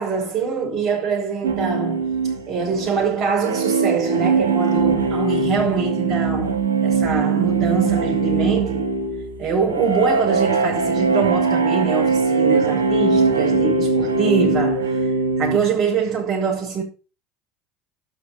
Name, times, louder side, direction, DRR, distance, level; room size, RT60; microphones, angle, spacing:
voice 1, 0.0-2.1 2.5-9.0 9.4-16.8, right 5 dB, 45° right, 6.8 m, -24 dB
sound 1, 1.4-15.6, right 4 dB, 90° right, 2.3 m, -21 dB
12.5 x 6.3 x 6.9 m
hypercardioid pair, 75°, 0 cm